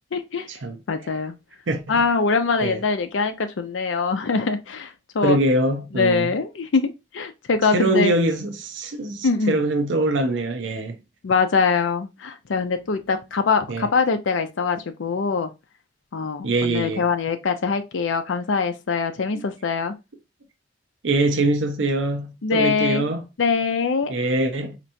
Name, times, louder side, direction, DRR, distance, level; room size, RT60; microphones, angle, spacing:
voice 1, 0.1-0.5 0.9-1.3 1.9-5.4 5.9-8.1 9.2-9.6 11.2-15.5 16.1-19.9 22.4-23.1 23.4-24.1, left 4 dB, 85° left, 0.5 m, -23 dB
voice 2, 5.2-6.3 7.7-11.0 13.7-13.9 16.4-17.0 21.0-23.2 24.1-24.8, right 2 dB, 85° right, 0.7 m, -23 dB
4.4 x 2.9 x 2.6 m
head